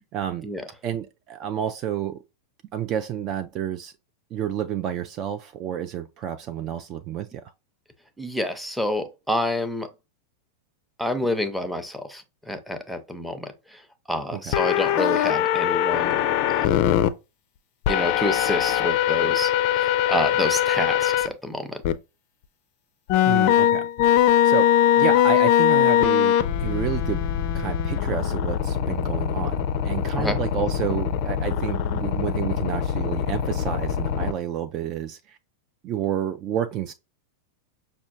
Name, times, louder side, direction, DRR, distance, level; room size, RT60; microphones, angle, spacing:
voice 1, 0.1-0.5 0.8-2.2 2.7-3.9 4.3-7.4 14.3-14.6 23.3-27.2 27.5-35.4 35.8-36.9, right 9 dB, 35° right, 0.3 m, -30 dB
voice 2, 8.2-9.9 11.0-13.8 14.1-16.8 17.9-21.8 30.2-30.4, left 1 dB, ahead, 0.6 m, -28 dB
sound 1, 14.5-17.1 17.8-21.3 21.8-21.9 23.1-34.3, left 10 dB, 45° left, 0.4 m, -22 dB
6.0 x 2.2 x 2.5 m
figure-of-eight pair, 90°, 0 cm